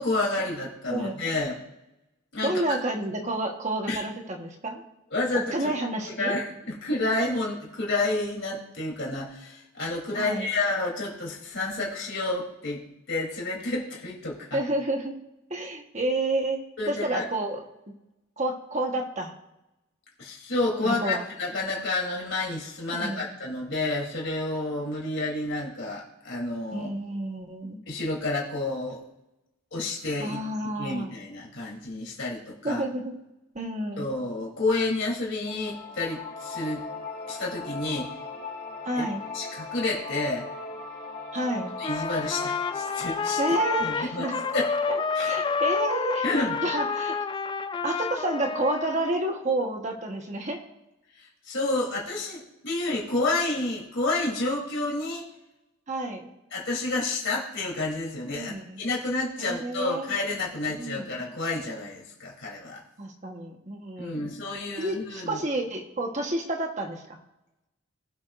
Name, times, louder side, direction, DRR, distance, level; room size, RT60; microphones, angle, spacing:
voice 1, 0.0-1.6 2.3-2.5 3.9-4.0 5.1-5.7 6.2-12.8 13.1-14.6 16.8-17.3 20.2-26.9 27.9-29.0 29.7-30.4 30.8-32.8 34.0-36.8 37.3-38.1 39.0-39.1 39.3-40.5 41.8-43.4 43.8-44.3 44.5-44.7 45.2-45.3 46.2-46.6 51.1-55.3 56.5-62.8 64.0-65.4, left 2 dB, 65° left, -3 dB, 3.5 m, -30 dB
voice 2, 0.9-1.2 2.4-4.8 5.5-6.3 10.1-10.5 14.5-15.1 15.5-16.6 16.9-17.6 18.4-19.3 20.8-21.2 22.9-23.3 26.7-27.8 30.2-31.1 32.6-33.2 33.5-34.1 38.8-39.2 41.3-41.7 43.4-44.3 44.9-46.2 46.6-47.2 47.8-50.6 55.9-56.3 58.3-58.8 59.4-60.1 60.7-61.1 63.0-64.3 64.8-67.0, right 1 dB, 35° right, 2 dB, 1.3 m, -30 dB
sound 1, 35.5-46.5, left 4 dB, 40° left, 3.7 m, -39 dB
Trumpet, 41.8-49.2, left 5 dB, 20° left, 0.3 m, -29 dB
20.5 x 7.0 x 2.6 m, 0.93 s
head